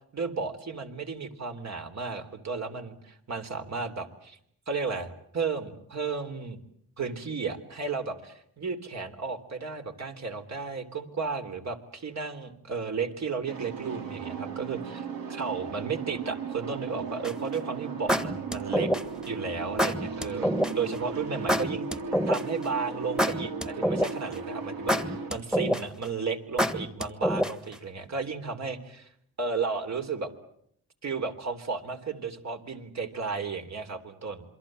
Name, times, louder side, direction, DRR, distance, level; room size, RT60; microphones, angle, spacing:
voice 1, 0.1-4.4 4.7-6.6 7.0-18.9 19.3-22.0 22.3-29.1 29.4-30.3 31.0-34.5, right 4 dB, 50° right, 6 dB, 3.6 m, -34 dB
sound 1, 13.5-25.3, right 5 dB, 85° right, 3.8 m, -36 dB
sound 2, 17.2-17.5 18.1-19.2 19.8-20.7 21.5-22.6 23.2-24.3 24.9-26.0 26.6-27.7, equal, ahead, 1.6 m, -26 dB
27.5 x 23.5 x 7.7 m, 0.71 s
cardioid pair, 95°, 34 cm